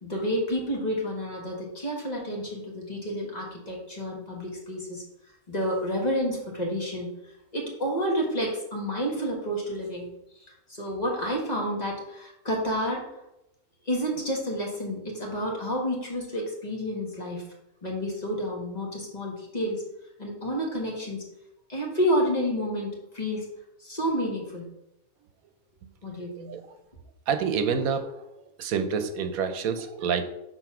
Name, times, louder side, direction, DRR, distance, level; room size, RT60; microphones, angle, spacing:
voice 1, 0.0-5.0 5.5-7.1 7.5-10.1 10.7-13.0 13.9-17.4 17.8-19.8 20.2-21.2 21.7-23.5 23.8-24.7 26.0-26.5, equal, 30° left, -2 dB, 1.9 m, -29 dB
voice 2, 26.2-26.6 27.3-28.1 28.6-30.2, right 6 dB, 80° right, 9 dB, 1.2 m, -27 dB
6.7 x 4.1 x 5.9 m, 0.86 s
omnidirectional pair, 1.5 m